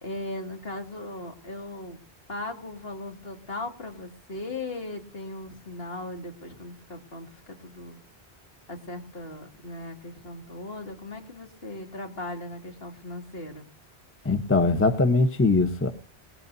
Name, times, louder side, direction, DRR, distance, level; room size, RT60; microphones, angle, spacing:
voice 1, 0.0-2.0 2.3-8.0 8.7-13.7, left 2 dB, 65° left, 3 dB, 2.6 m, -38 dB
voice 2, 14.2-15.9, left 3 dB, 15° left, 9 dB, 0.8 m, -21 dB
20.5 x 18.0 x 2.7 m, 0.38 s
omnidirectional pair, 1.1 m